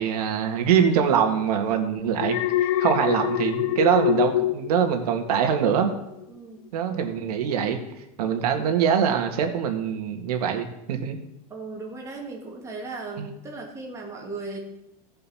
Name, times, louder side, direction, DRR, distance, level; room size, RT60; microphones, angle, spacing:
voice 1, 0.0-5.9 6.7-7.8 8.2-11.2 13.2-13.3, right 8 dB, 90° right, 5 dB, 1.9 m, -23 dB
Alarm, 2.2-5.5 5.9-6.2, left 13 dB, 65° left, 0.6 m, -25 dB
voice 2, 6.3-6.7 11.5-14.6, right 3 dB, 15° right, 0 dB, 2.0 m, -37 dB
16.0 x 5.6 x 5.7 m, 0.85 s
supercardioid pair, 165°, 19 cm